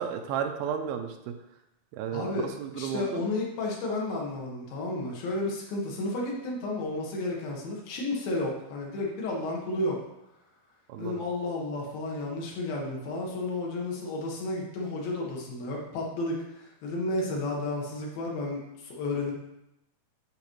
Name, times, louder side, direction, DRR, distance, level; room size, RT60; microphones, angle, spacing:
voice 1, 0.0-1.3 1.9-3.2 10.9-11.2, right 8 dB, 85° right, 6 dB, 2.4 m, -33 dB
voice 2, 2.1-10.0 11.0-19.3, left 2 dB, 75° left, -2 dB, 3.0 m, -32 dB
10.5 x 4.8 x 3.1 m, 0.88 s
omnidirectional pair, 4.4 m